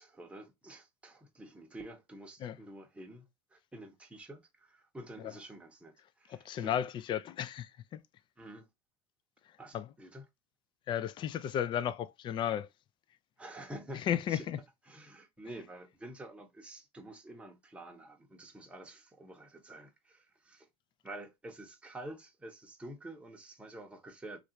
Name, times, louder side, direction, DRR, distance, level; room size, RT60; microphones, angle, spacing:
voice 1, 0.0-6.8 8.4-8.7 9.6-10.2 13.4-14.5 14.9-20.7 21.0-24.4, right 1 dB, 10° right, 0.8 m, -49 dB
voice 2, 6.3-8.0 9.7-9.9 10.9-12.7 14.1-14.6, left 10 dB, 35° left, 0.4 m, -34 dB
3.2 x 2.5 x 2.8 m
supercardioid pair, 120°, 14 cm